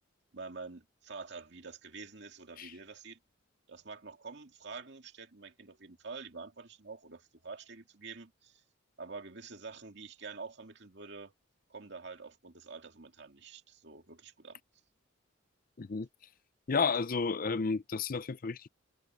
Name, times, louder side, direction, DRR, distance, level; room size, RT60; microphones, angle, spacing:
voice 1, 0.3-3.2 3.7-8.6 9.0-11.3 11.7-14.6, right 4 dB, 60° right, 2.4 m, -47 dB
voice 2, 15.8-16.1 16.7-18.7, left 5 dB, 45° left, 0.5 m, -32 dB
head